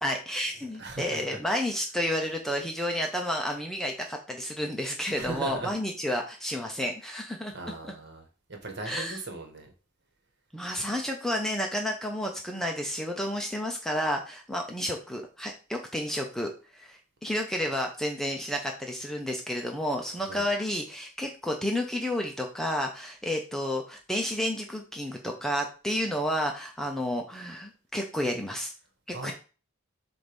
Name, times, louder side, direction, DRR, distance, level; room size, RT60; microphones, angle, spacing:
voice 1, 0.0-7.5 7.8-7.9 8.9-9.2 10.5-28.7 29.2-29.3, equal, ahead, 2 dB, 0.6 m, -31 dB
voice 2, 0.8-1.4 5.1-5.7 7.5-9.7 20.1-20.5 29.1-29.3, right 2 dB, 50° right, 3 dB, 1.5 m, -38 dB
7.5 x 2.6 x 5.3 m, 0.35 s
head